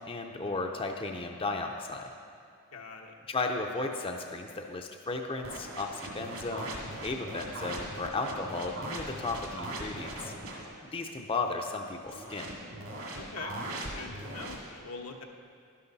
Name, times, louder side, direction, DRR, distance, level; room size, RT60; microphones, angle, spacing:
voice 1, 0.0-2.1 3.3-6.8 7.0-10.3 10.9-12.5, left 3 dB, 25° left, 3 dB, 0.6 m, -35 dB
voice 2, 2.7-3.2 13.1-13.5 13.9-15.2, left 4 dB, 85° left, 2 dB, 1.1 m, -43 dB
sound 1, 5.4-10.7 12.1-14.6, right 1 dB, 65° right, 1.9 m, -40 dB
11.5 x 11.5 x 4.1 m, 2.3 s
head